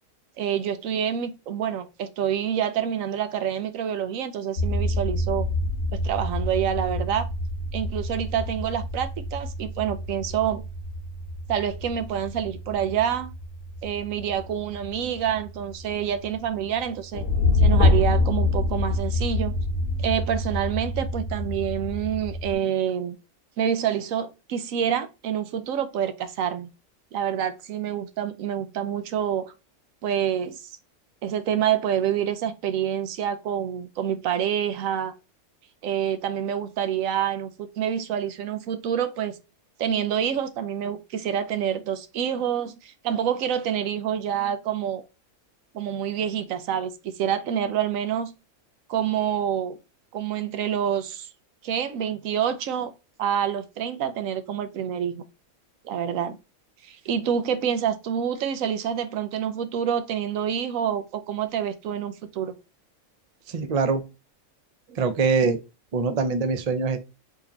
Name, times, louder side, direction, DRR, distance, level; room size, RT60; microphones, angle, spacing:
voice 1, 0.4-5.5 5.9-7.3 7.7-10.6 11.5-13.3 13.8-17.2 17.5-19.5 20.0-23.2 23.6-26.7 27.1-29.5 30.0-30.7 31.2-35.1 35.8-39.4 39.8-45.0 45.7-48.3 48.9-49.8 50.1-51.3 51.6-52.9 53.2-55.2 55.8-56.4 56.8-62.5 64.9-65.0, right 9 dB, 75° right, 1.0 m, -27 dB
sound 1, 4.6-22.5, left 2 dB, 70° left, 1.3 m, -27 dB
voice 2, 63.5-64.0 65.0-65.6 65.9-67.0, right 4 dB, 60° right, 0.4 m, -23 dB
3.7 x 3.5 x 2.8 m
omnidirectional pair, 1.4 m